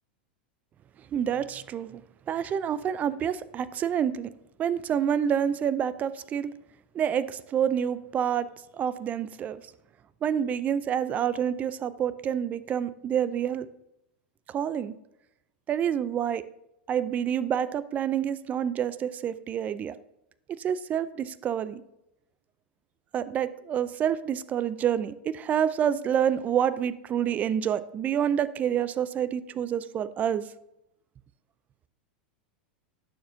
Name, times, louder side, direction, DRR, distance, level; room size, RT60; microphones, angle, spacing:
voice 1, 1.1-2.0 2.3-4.3 4.6-6.5 6.9-8.5 8.8-9.6 10.2-13.7 14.5-14.9 15.7-16.4 16.9-19.9 20.6-21.8 23.1-30.5, right 9 dB, 30° right, 16 dB, 0.4 m, -28 dB
9.3 x 6.7 x 2.7 m, 0.82 s
hypercardioid pair, 110°, 5 cm